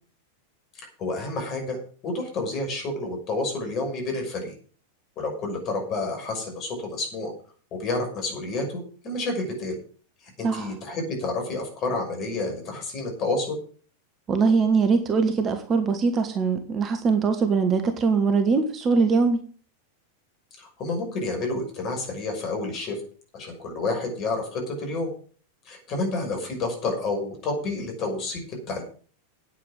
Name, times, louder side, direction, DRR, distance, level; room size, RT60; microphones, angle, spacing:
voice 1, 1.0-4.5 5.2-7.3 7.7-9.8 10.4-13.6 20.6-23.0 23.3-25.1 25.6-28.8, left 2 dB, 35° left, 2 dB, 6.1 m, -29 dB
voice 2, 14.3-19.4, right 4 dB, 25° right, 7 dB, 1.6 m, -22 dB
9.4 x 9.2 x 7.4 m, 0.42 s
figure-of-eight pair, 90°, 0 cm